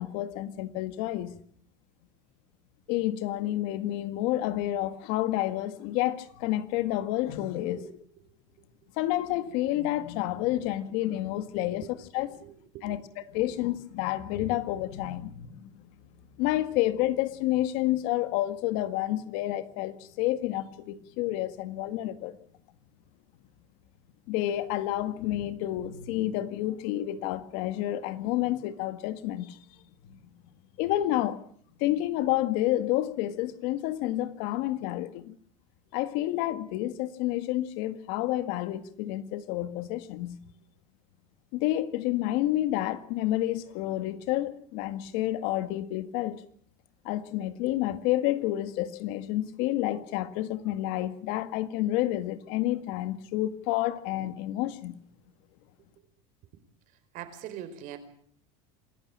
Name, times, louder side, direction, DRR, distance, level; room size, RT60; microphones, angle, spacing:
voice 1, 0.0-1.3 2.9-7.8 9.0-12.4 12.8-13.0 13.3-15.9 16.4-22.4 24.3-29.6 30.1-30.2 30.8-31.4 31.8-35.3 35.9-40.4 41.5-46.4 47.1-55.0, left 14 dB, 65° left, 1.9 m, -29 dB
voice 2, 12.3-13.0 57.1-58.0, right 11 dB, 55° right, 4.6 m, -42 dB
27.0 x 15.0 x 8.7 m
supercardioid pair, 135°, 16 cm